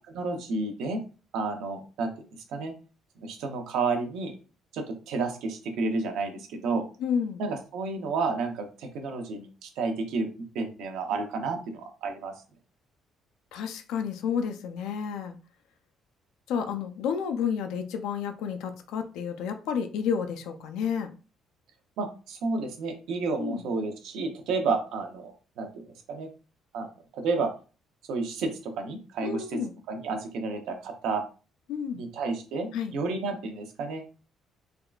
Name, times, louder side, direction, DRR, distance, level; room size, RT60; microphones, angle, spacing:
voice 1, 0.1-1.0 1.3-2.1 2.5-2.7 3.2-4.3 4.7-6.8 7.4-10.3 10.5-12.3 22.0-25.8 26.1-26.3 26.7-26.9 27.1-27.5 28.1-29.6 29.9-31.2 31.9-34.0, right 4 dB, 80° right, 0.7 m, -31 dB
voice 2, 7.0-7.4 13.5-15.4 16.5-21.1 23.4-23.7 29.2-29.7 31.7-32.0 32.7-32.9, left 7 dB, 85° left, 0.4 m, -30 dB
3.5 x 2.3 x 2.3 m
cardioid pair, 140°, 0 cm